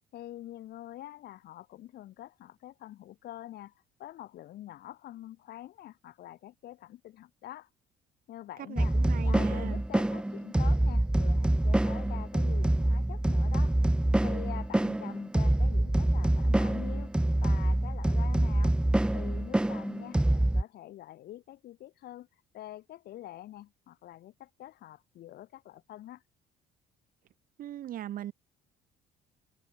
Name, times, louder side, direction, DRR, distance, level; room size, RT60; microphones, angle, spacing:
voice 1, 0.1-7.7 8.3-13.8 14.2-18.8 19.1-26.2, left 14 dB, 70° left, 4.9 m, -46 dB
voice 2, 8.7-9.8 27.6-28.3, right 12 dB, 55° right, 1.1 m, -39 dB
sound 1, 8.8-20.6, right 1 dB, 5° right, 0.9 m, -26 dB
cardioid pair, 110°, 17 cm